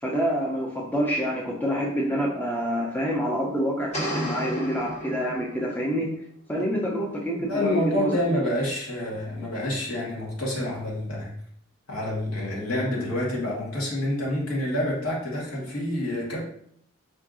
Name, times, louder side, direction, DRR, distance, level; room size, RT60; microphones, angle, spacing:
voice 1, 0.0-6.1 6.5-8.2, equal, 10° left, -2 dB, 0.4 m, -27 dB
sound 1, 3.9-5.9, equal, 35° left, 1.2 m, -32 dB
voice 2, 7.5-11.4 11.9-16.5, left 1 dB, 90° left, -4 dB, 1.3 m, -28 dB
4.6 x 2.5 x 2.5 m, 0.65 s
head